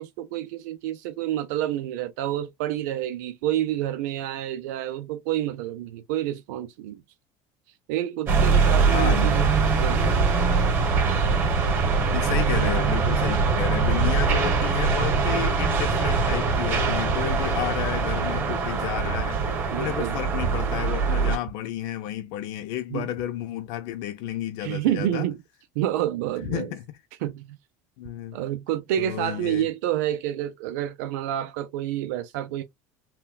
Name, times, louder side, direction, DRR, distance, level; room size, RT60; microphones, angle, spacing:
voice 1, 0.0-7.0 7.9-10.2 19.7-20.1 22.9-23.1 24.6-25.4 25.8-26.7 27.2-27.6 28.3-32.6, right 12 dB, 90° right, 0.6 m, -29 dB
sound 1, 8.3-21.4, right 4 dB, 25° right, 1.5 m, -22 dB
voice 2, 8.9-9.4 12.1-19.4 19.8-25.3 26.5-26.8 28.0-28.4 29.0-29.7, left 13 dB, 65° left, 0.5 m, -31 dB
5.7 x 2.3 x 2.3 m
cardioid pair, 160°, 9 cm